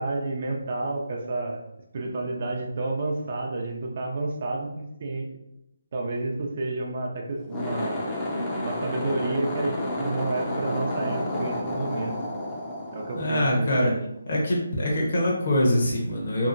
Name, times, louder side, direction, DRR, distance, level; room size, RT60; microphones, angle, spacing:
voice 1, 0.0-1.6 1.9-5.3 5.9-8.0 8.6-12.2 12.9-14.0, right 2 dB, 45° right, 1 dB, 0.4 m, -30 dB
sound 1, 7.4-13.9, left 1 dB, 15° left, 0.4 m, -31 dB
voice 2, 13.1-13.9 14.3-16.5, left 1 dB, 50° left, -3 dB, 0.8 m, -24 dB
2.8 x 2.4 x 2.5 m, 0.85 s
figure-of-eight pair, 160°, 0 cm